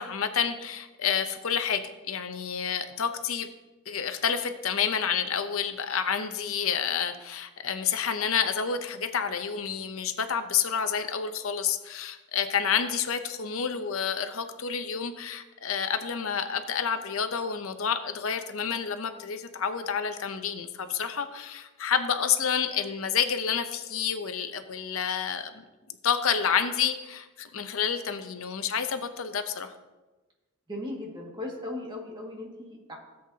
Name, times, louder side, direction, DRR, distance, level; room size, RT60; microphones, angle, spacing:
voice 1, 0.0-3.5 3.9-25.5 26.0-29.7, left 7 dB, 70° left, 8 dB, 0.7 m, -29 dB
voice 2, 30.7-33.0, left 1 dB, 20° right, -2 dB, 1.9 m, -37 dB
16.5 x 7.8 x 2.8 m, 1.2 s
head